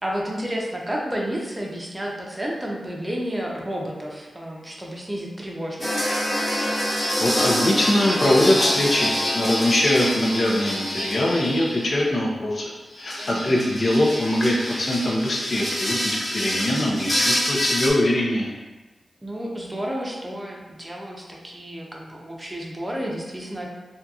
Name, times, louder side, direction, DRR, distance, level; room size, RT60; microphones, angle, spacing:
voice 1, 0.0-6.1 13.2-13.5 19.2-23.7, equal, 25° right, -2 dB, 0.6 m, -31 dB
sound 1, 5.8-11.9 12.9-17.9, equal, 40° left, 0.9 m, -26 dB
voice 2, 7.2-12.7 13.0-18.5, left 1 dB, 60° left, -2 dB, 0.6 m, -22 dB
2.7 x 2.4 x 2.3 m, 1.2 s
cardioid pair, 45°, 0 cm